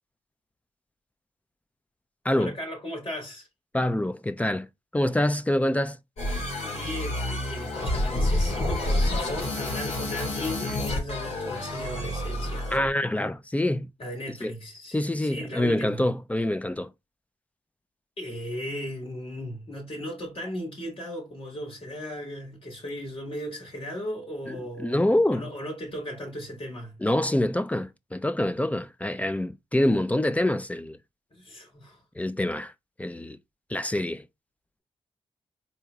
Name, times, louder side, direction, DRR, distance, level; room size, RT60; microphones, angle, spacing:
voice 1, 2.4-3.5 6.6-12.7 14.0-16.1 18.2-27.0 31.3-32.0, equal, 60° left, 3.0 m, -37 dB
voice 2, 3.7-4.7 4.9-6.0 12.7-13.9 14.4-14.5 14.9-16.9 24.5-25.5 27.0-31.0 32.2-32.7 33.0-33.4 33.7-34.2, left 1 dB, 10° left, 0.4 m, -26 dB
sound 1, 6.2-12.9, left 1 dB, 75° left, 2.3 m, -28 dB
4.2 x 2.9 x 3.5 m
cardioid pair, 60°, 11 cm